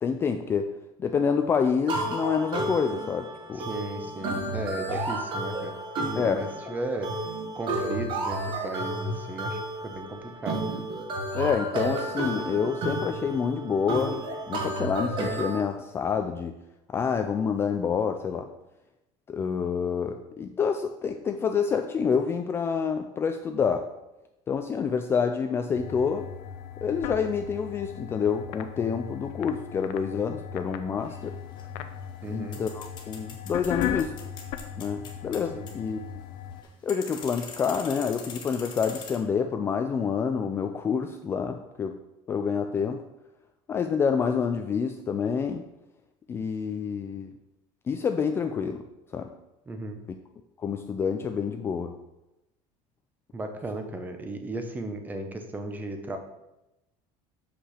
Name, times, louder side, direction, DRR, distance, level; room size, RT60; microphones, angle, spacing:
voice 1, 0.0-3.7 4.9-5.0 6.2-6.8 11.3-14.2 14.5-16.5 16.9-18.5 19.3-23.9 24.5-26.3 26.8-31.4 32.3-34.2 34.8-36.0 36.8-42.0 42.3-43.0 43.7-45.6 46.3-47.3 47.9-48.8 49.1-49.3 50.1-50.2 50.6-51.9, left 6 dB, 20° left, 6 dB, 0.3 m, -28 dB
sound 1, 1.9-15.6, right 2 dB, 40° right, 1.4 m, -32 dB
voice 2, 3.5-5.7 6.1-7.1 7.5-10.6 32.2-32.6 35.5-35.7 49.7-50.0 53.3-56.2, right 2 dB, 15° right, 6 dB, 0.8 m, -35 dB
sound 2, 25.7-36.6, left 10 dB, 65° left, 0.6 m, -37 dB
sound 3, 31.0-39.2, left 6 dB, 35° left, 1.3 m, -44 dB
6.7 x 5.5 x 5.7 m, 0.93 s
cardioid pair, 165°, 12 cm